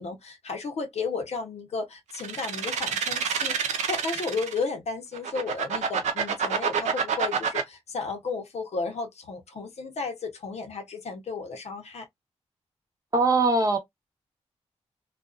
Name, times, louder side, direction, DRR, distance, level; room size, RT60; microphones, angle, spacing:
voice 1, 0.0-12.1, left 4 dB, 65° left, 0.8 m, -33 dB
sound 1, 2.1-4.6 5.1-7.6, right 6 dB, 85° right, 0.5 m, -27 dB
voice 2, 13.1-13.8, right 3 dB, 30° right, 0.9 m, -21 dB
2.4 x 2.3 x 2.3 m
cardioid pair, 55°, 12 cm